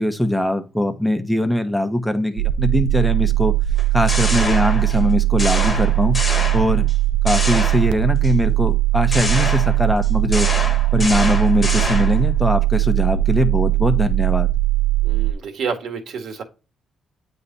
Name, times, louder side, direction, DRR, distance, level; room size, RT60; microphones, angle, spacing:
voice 1, 0.0-3.5 3.9-6.2 6.5-6.9 7.2-10.5 10.9-14.5, left 1 dB, 5° left, 8 dB, 1.1 m, -21 dB
sound 1, 2.4-15.3, right 16 dB, 85° right, 0.4 m, -19 dB
sound 2, 3.8-5.1 5.4-6.9 7.3-8.3 9.1-12.3, left 2 dB, 30° left, 1.4 m, -26 dB
voice 2, 15.0-16.4, right 5 dB, 70° right, 4 dB, 1.8 m, -29 dB
8.5 x 3.3 x 4.1 m, 0.31 s
cardioid pair, 90°, 0 cm